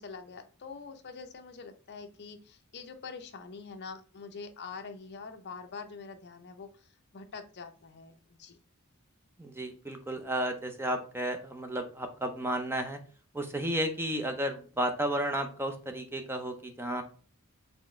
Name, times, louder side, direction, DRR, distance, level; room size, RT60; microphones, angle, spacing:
voice 1, 0.0-8.6, left 4 dB, 50° left, 6 dB, 0.6 m, -45 dB
voice 2, 9.4-13.0 13.3-17.0, right 1 dB, 10° right, 6 dB, 0.5 m, -33 dB
4.4 x 3.4 x 3.1 m, 0.39 s
head